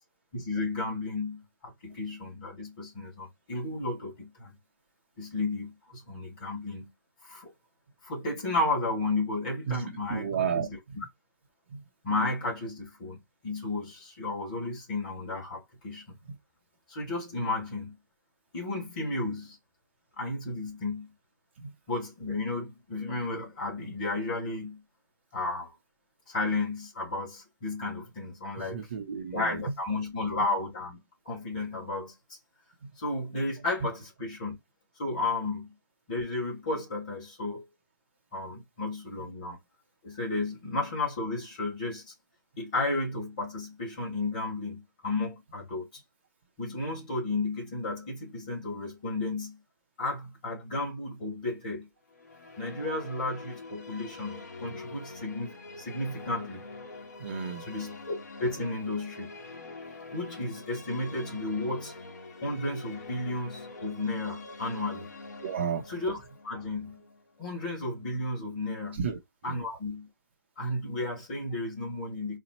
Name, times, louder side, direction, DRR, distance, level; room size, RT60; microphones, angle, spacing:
voice 1, 0.3-4.5 5.2-6.9 7.2-7.5 8.0-10.8 12.0-13.2 13.4-16.2 16.9-17.9 18.5-19.6 20.2-21.1 21.9-24.8 25.3-25.7 26.3-28.9 29.3-31.0 31.2-32.1 33.0-34.6 35.0-35.7 36.1-37.6 38.3-39.6 40.0-42.1 42.6-45.9 46.6-49.6 50.0-51.9 52.6-56.7 57.6-59.3 60.1-61.9 62.4-65.1 65.9-67.0 67.4-69.0 69.4-70.1 70.6-72.4, left 2 dB, 25° left, 1.6 m, -33 dB
voice 2, 10.1-11.0 11.7-11.8 21.6-21.7 28.6-29.6 32.8-32.9 57.2-57.6 65.4-65.8 69.0-69.2 69.4-69.5, right 7 dB, 35° right, 0.6 m, -32 dB
sound 1, 52.1-68.1, left 3 dB, 50° left, 1.3 m, -45 dB
4.1 x 2.1 x 4.1 m
hypercardioid pair, 170°, 11 cm